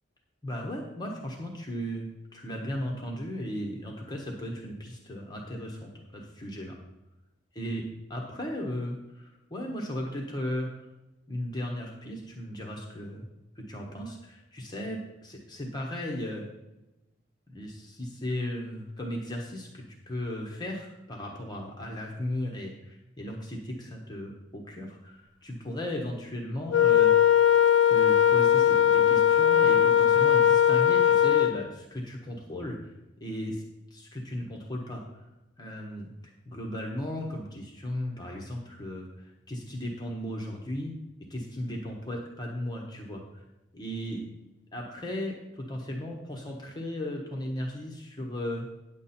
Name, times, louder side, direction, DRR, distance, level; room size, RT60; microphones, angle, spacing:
voice 1, 0.4-2.1 2.3-6.8 7.5-7.8 8.1-10.9 11.3-13.2 13.7-16.5 17.5-27.4 27.9-32.9 33.2-33.6 33.9-35.3 35.6-36.1 36.5-40.9 41.3-43.4 43.7-44.2 44.7-48.6, left 1 dB, 20° left, 0 dB, 1.1 m, -36 dB
Wind instrument woodwind instrument, 26.7-31.6, left 10 dB, 75° left, 0.5 m, -20 dB
9.4 x 7.3 x 4.3 m, 0.98 s
head